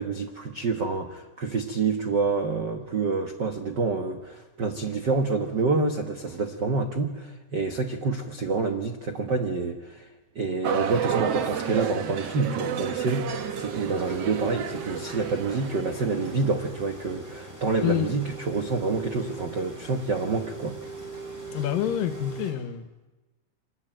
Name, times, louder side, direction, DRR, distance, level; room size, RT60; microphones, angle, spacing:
voice 1, 0.0-10.1 10.3-20.8, right 4 dB, 90° right, 6 dB, 0.9 m, -27 dB
sound 1, 10.6-16.6, right 7 dB, 60° right, 1.8 m, -31 dB
sound 2, 13.3-22.5, right 3 dB, 5° right, 7.3 m, -40 dB
voice 2, 21.5-23.1, left 12 dB, 75° left, 11 dB, 2.7 m, -27 dB
25.0 x 20.0 x 9.1 m, 1.2 s
omnidirectional pair, 4.1 m